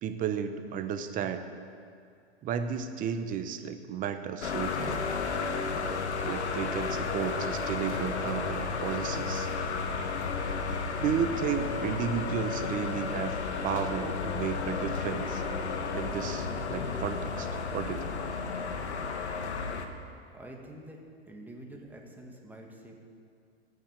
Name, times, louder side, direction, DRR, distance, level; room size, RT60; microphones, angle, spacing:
voice 1, 0.0-1.4 2.4-5.0 5.7-9.5 11.0-15.4 15.9-18.1, right 8 dB, 25° right, 9 dB, 0.9 m, -33 dB
sound 1, 4.4-19.9, left 5 dB, 85° left, 1.4 m, -32 dB
voice 2, 20.3-22.9, right 1 dB, 5° right, 0 dB, 1.7 m, -47 dB
14.5 x 9.4 x 7.5 m, 2.3 s
hypercardioid pair, 125°, 33 cm